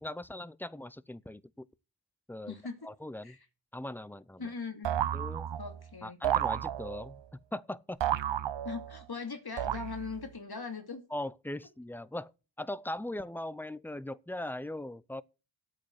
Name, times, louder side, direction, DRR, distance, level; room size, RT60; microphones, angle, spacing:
voice 1, 0.0-1.7 2.3-3.4 3.7-4.5 5.1-5.5 6.0-8.0 11.1-12.3 12.6-15.2, left 1 dB, 5° left, 0.5 m, -40 dB
voice 2, 2.5-2.9 3.2-3.4 4.4-5.0 5.6-6.2 8.6-11.0, left 4 dB, 55° left, 2.6 m, -40 dB
sound 1, 4.8-5.8 6.2-7.2 8.0-9.0 9.6-10.3, right 10 dB, 70° right, 0.6 m, -32 dB
8.6 x 7.5 x 8.1 m
wide cardioid pair, 75°, 45 cm